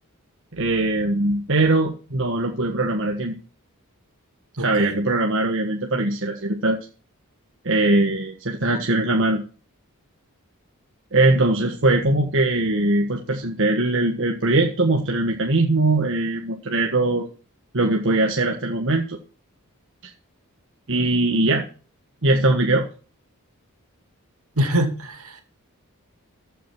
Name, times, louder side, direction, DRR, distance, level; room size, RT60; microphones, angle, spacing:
voice 1, 0.5-3.3 4.6-6.8 7.6-9.4 11.1-17.3 17.7-19.2 20.9-21.6 22.2-22.8, right 2 dB, 55° right, 1.5 m, -21 dB
voice 2, 4.6-5.0 24.6-25.4, right 1 dB, 75° right, 2.6 m, -24 dB
14.5 x 6.3 x 6.1 m
head